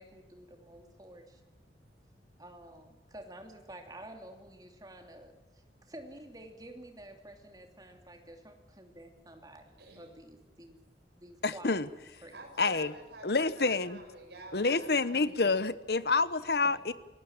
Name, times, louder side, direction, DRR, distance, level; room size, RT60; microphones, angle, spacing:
voice 1, 0.0-1.4 2.4-10.8 11.1-11.7 12.2-12.3 16.6-16.7, right 1 dB, 20° right, 4 dB, 2.8 m, -50 dB
voice 2, 1.6-2.4 9.8-10.1 12.3-15.5, right 2 dB, 70° right, 2 dB, 7.2 m, -50 dB
voice 3, 11.4-11.9 12.6-12.9 13.2-14.0 14.5-16.9, left 3 dB, 60° left, 15 dB, 1.0 m, -28 dB
28.5 x 17.0 x 7.4 m, 1.1 s
head